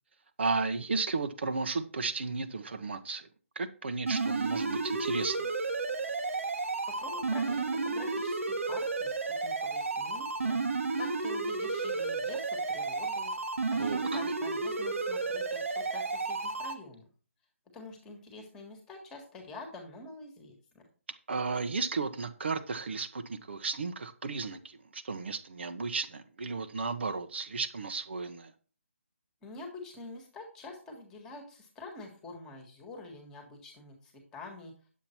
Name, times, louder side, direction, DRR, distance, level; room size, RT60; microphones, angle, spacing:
voice 1, 0.4-3.3 3.5-5.5 13.8-14.2 21.3-28.5, right 4 dB, 55° right, 8 dB, 1.2 m, -34 dB
sound 1, 4.1-16.7, right 3 dB, 75° right, 1.7 m, -32 dB
voice 2, 6.9-17.1 17.7-20.8 29.4-34.7, left 3 dB, 10° left, 3 dB, 1.7 m, -47 dB
9.6 x 7.5 x 4.5 m, 0.39 s
hypercardioid pair, 170°, 7 cm